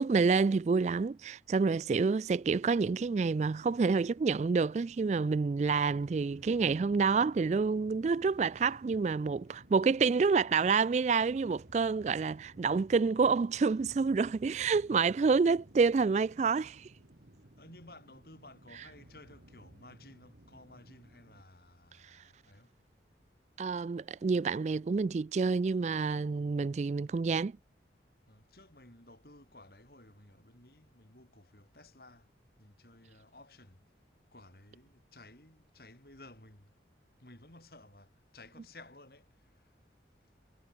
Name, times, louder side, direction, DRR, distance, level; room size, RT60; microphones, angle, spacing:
voice 1, 0.0-16.9 23.6-27.5, right 4 dB, 40° right, 0.3 m, -28 dB
sound 1, 2.4-21.4, right 1 dB, 60° right, 2.0 m, -58 dB
voice 2, 17.6-22.7 28.3-32.2 32.6-33.8 34.3-36.7 37.2-39.3, left 2 dB, 55° left, 5.7 m, -55 dB
head